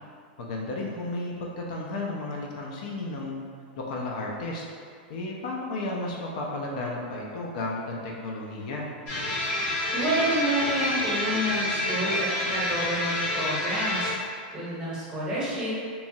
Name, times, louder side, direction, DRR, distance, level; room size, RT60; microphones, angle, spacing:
voice 1, 0.4-3.4 3.8-4.6 5.1-8.9, left 2 dB, 55° left, -2 dB, 0.4 m, -33 dB
sound 1, 9.1-14.1, left 1 dB, 35° left, 0.7 m, -28 dB
voice 2, 9.9-15.7, right 1 dB, 15° right, -9 dB, 0.8 m, -29 dB
2.9 x 2.2 x 2.6 m, 2.2 s
supercardioid pair, 160°, 5 cm